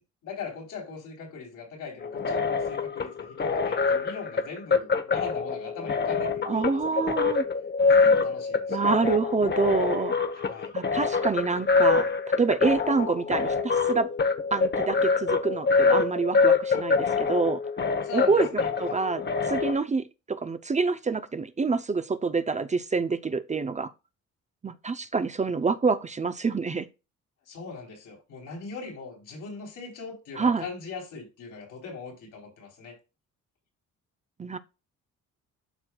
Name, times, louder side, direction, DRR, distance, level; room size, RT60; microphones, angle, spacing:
voice 1, 0.2-7.0 7.9-8.8 10.3-10.7 18.0-19.0 27.4-33.0, left 5 dB, 80° left, 3.4 m, -40 dB
sound 1, 2.0-19.7, left 4 dB, 35° left, 1.0 m, -25 dB
voice 2, 6.4-7.4 8.7-10.2 10.7-12.1 12.4-13.5 13.9-14.1 14.5-17.6 18.1-18.5 18.8-23.9 24.6-26.9 30.4-30.7 34.4-34.6, right 4 dB, 25° right, 0.5 m, -26 dB
12.0 x 4.4 x 2.3 m
cardioid pair, 90°, 30 cm